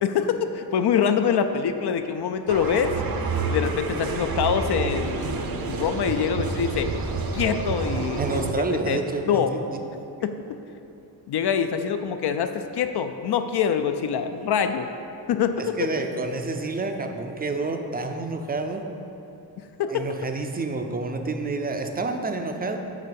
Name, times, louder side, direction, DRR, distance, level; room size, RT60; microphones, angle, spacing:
voice 1, 0.0-2.9 3.5-6.9 7.3-9.0 9.2-9.5 10.2-10.3 11.3-14.9 15.3-15.5 19.8-20.1, left 7 dB, 65° left, 8 dB, 0.5 m, -25 dB
sound 1, 2.5-8.5, right 4 dB, 55° right, 0.7 m, -28 dB
voice 2, 8.2-9.8 15.6-18.9 19.9-22.8, right 3 dB, 20° right, 5 dB, 0.4 m, -29 dB
9.9 x 3.6 x 6.9 m, 2.8 s
wide cardioid pair, 175°, 42 cm